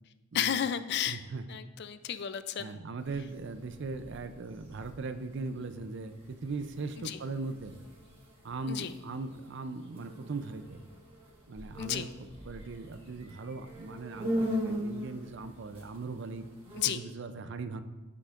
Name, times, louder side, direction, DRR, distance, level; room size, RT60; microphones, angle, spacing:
voice 1, 0.3-1.2 1.5-2.8 7.0-7.2 8.7-8.9 11.8-12.1 16.8-17.0, left 9 dB, 55° left, 12 dB, 0.4 m, -32 dB
voice 2, 1.1-1.4 2.6-7.8 8.4-10.8 11.5-12.1 12.4-16.5 16.9-17.8, right 3 dB, 60° right, 10 dB, 0.5 m, -39 dB
sound 1, 3.0-16.9, equal, 25° right, 1.7 m, -41 dB
15.5 x 6.0 x 2.5 m, 1.2 s
head